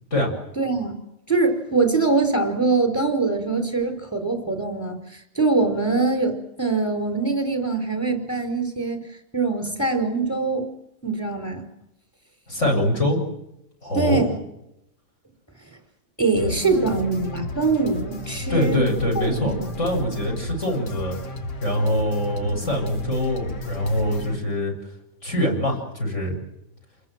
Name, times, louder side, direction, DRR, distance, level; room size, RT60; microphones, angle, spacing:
voice 1, 0.6-1.0 1.3-9.0 9.3-10.7 11.0-11.6 13.9-14.3 16.2-18.8 19.1-19.7, right 3 dB, 10° left, 6 dB, 5.0 m, -23 dB
voice 2, 12.5-13.2 13.8-14.2 18.5-21.2 21.6-24.7 25.2-26.4, left 1 dB, 45° left, 3 dB, 8.3 m, -24 dB
sound 1, 16.4-24.4, left 1 dB, 90° left, 3.0 m, -33 dB
29.5 x 21.5 x 7.7 m, 0.84 s
omnidirectional pair, 1.8 m